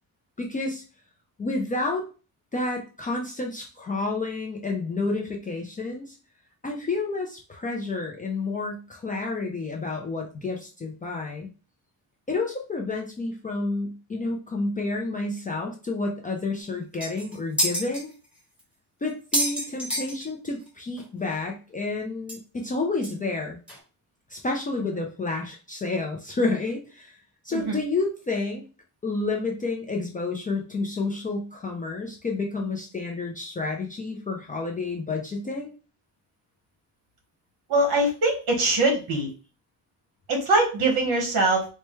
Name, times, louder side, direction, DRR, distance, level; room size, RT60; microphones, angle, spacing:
voice 1, 0.4-0.8 1.4-2.1 2.5-6.2 6.6-11.5 12.3-18.1 19.0-23.6 24.3-27.2 27.4-28.6 29.0-35.7, left 3 dB, 20° left, 0 dB, 0.4 m, -30 dB
sound 1, 16.6-16.7 17.0-18.0 18.6-18.7 19.1-20.7 21.0-21.1 21.3-21.4 22.3-22.4 23.0-23.1 23.7-23.8, equal, 5° right, 1.4 m, -28 dB
voice 2, 37.7-39.3 40.3-41.7, right 2 dB, 60° right, 2 dB, 1.4 m, -22 dB
4.6 x 2.1 x 3.1 m, 0.34 s
cardioid pair, 155°, 42 cm